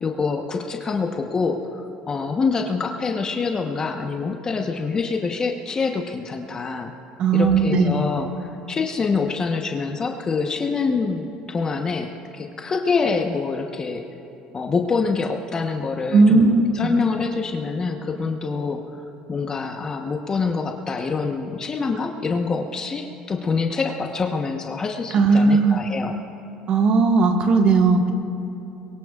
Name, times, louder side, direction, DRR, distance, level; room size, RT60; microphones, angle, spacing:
voice 1, 0.0-6.9 7.3-14.0 14.5-19.0 19.3-26.2, left 4 dB, 30° left, 3 dB, 1.0 m, -26 dB
voice 2, 7.2-8.0 16.1-16.9 25.1-25.8 26.7-28.1, right 4 dB, 55° right, 3 dB, 1.7 m, -17 dB
22.5 x 22.5 x 2.4 m, 3.0 s
supercardioid pair, 95°, 2 cm